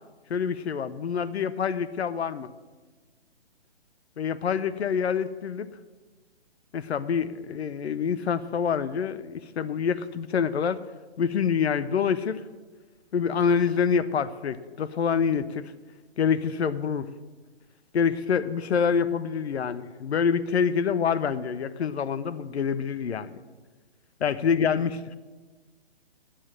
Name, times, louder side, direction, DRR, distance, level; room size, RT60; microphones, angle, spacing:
voice 1, 0.3-2.5 4.2-5.7 6.7-10.8 11.2-12.4 13.1-15.7 16.2-17.1 17.9-23.4 24.2-25.1, left 6 dB, 80° left, 13 dB, 0.8 m, -26 dB
10.0 x 8.2 x 8.9 m, 1.3 s
hypercardioid pair, 160°, 32 cm